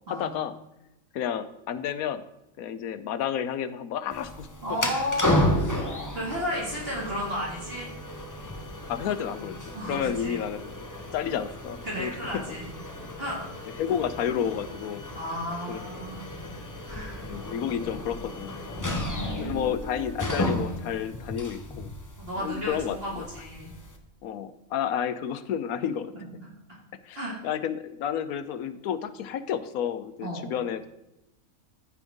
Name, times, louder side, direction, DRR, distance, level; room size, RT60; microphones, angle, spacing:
voice 1, 0.1-0.5 1.1-2.2 2.6-4.8 8.9-10.8 11.1-12.4 13.8-15.0 15.7-16.1 17.2-18.6 19.4-21.9 22.4-23.2 24.2-26.1 27.1-30.9, left 9 dB, 85° left, 12 dB, 1.1 m, -31 dB
sound 1, 4.1-24.0, left 1 dB, 15° left, 0.7 m, -33 dB
voice 2, 4.6-5.4 6.1-7.9 9.7-10.4 11.8-12.6 13.2-13.4 15.1-16.2 16.9-17.2 18.7-19.7 22.2-23.7 27.2-27.3 30.2-30.5, equal, 45° right, -5 dB, 2.4 m, -33 dB
14.5 x 5.3 x 3.5 m, 0.92 s
omnidirectional pair, 1.5 m